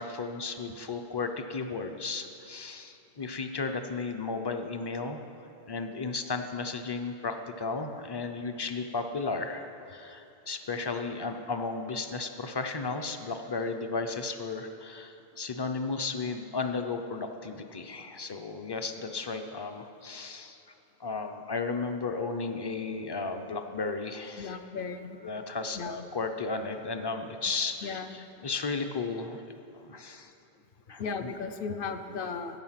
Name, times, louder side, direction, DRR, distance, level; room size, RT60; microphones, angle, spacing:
voice 1, 0.0-5.2 5.7-20.6 21.0-24.6 25.2-28.0 28.4-29.4 29.7-30.3 30.9-31.3, left 4 dB, 30° left, 6 dB, 0.5 m, -34 dB
voice 2, 24.4-25.2 25.7-26.0 27.8-28.5 31.0-32.6, left 5 dB, 60° left, 8 dB, 0.8 m, -36 dB
12.0 x 8.6 x 5.8 m, 2.7 s
omnidirectional pair, 1.1 m